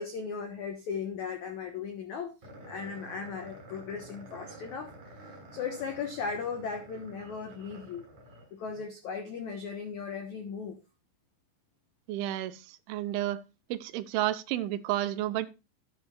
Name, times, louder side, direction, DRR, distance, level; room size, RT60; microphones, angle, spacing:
voice 1, 0.0-2.3 2.7-8.1 8.5-10.8, left 6 dB, 85° left, 6 dB, 1.6 m, -37 dB
sound 1, 2.4-8.8, right 1 dB, 40° right, 6.3 m, -49 dB
voice 2, 12.1-13.4 13.7-15.5, right 14 dB, 85° right, 12 dB, 3.2 m, -31 dB
12.0 x 11.5 x 2.4 m, 0.28 s
omnidirectional pair, 5.4 m